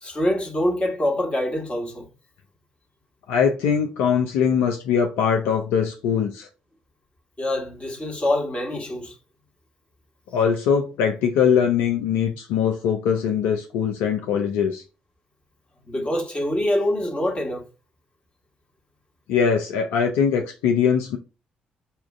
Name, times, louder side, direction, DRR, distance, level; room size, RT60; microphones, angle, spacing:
voice 1, 0.0-2.1 7.4-9.1 15.8-17.7, left 1 dB, 30° left, 1.3 m, -25 dB
voice 2, 3.3-6.5 10.3-14.8 19.3-21.2, left 7 dB, 65° left, 0.4 m, -21 dB
5.4 x 2.4 x 2.5 m
figure-of-eight pair, 45°, 4 cm